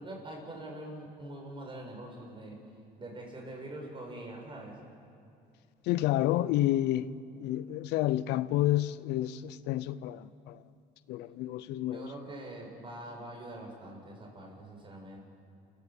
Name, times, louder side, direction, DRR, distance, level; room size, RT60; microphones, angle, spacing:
voice 1, 0.0-2.6 3.0-4.8 11.9-15.2, right 1 dB, 30° right, 6.3 m, -44 dB
voice 2, 5.9-7.1 7.4-10.6 11.1-12.1, left 14 dB, 90° left, 0.6 m, -29 dB
30.0 x 15.0 x 7.4 m
cardioid pair, 110°, 17 cm